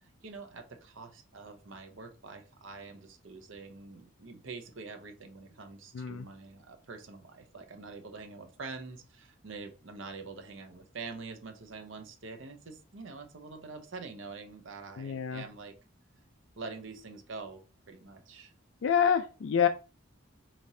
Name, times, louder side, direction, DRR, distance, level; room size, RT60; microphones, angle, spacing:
voice 1, 0.0-15.7 16.6-18.5, right 4 dB, 70° right, 6 dB, 0.7 m, -45 dB
voice 2, 5.9-6.3 15.0-15.4 18.8-19.7, left 7 dB, 75° left, 8 dB, 0.4 m, -27 dB
5.0 x 3.0 x 2.7 m, 0.33 s
head